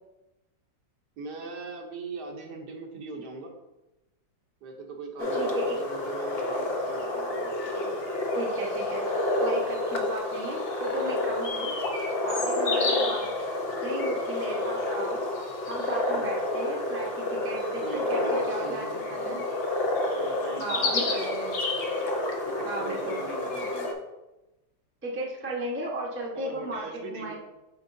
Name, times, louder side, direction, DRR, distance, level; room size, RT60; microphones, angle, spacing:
voice 1, 1.2-3.5 4.6-8.0 16.1-16.3 17.8-19.4 20.2-21.3 22.5-23.9 26.3-27.4, right 4 dB, 70° right, 2 dB, 1.4 m, -40 dB
sound 1, 5.2-23.9, left 2 dB, 55° left, 0.6 m, -29 dB
voice 2, 5.3-5.8 8.3-9.0 9.4-11.8 12.2-13.3 13.8-15.3 15.7-19.4 20.6-21.5 22.6-23.2 25.0-27.4, right 1 dB, 10° right, -2 dB, 0.6 m, -35 dB
8.0 x 4.6 x 2.6 m, 0.99 s
omnidirectional pair, 2.0 m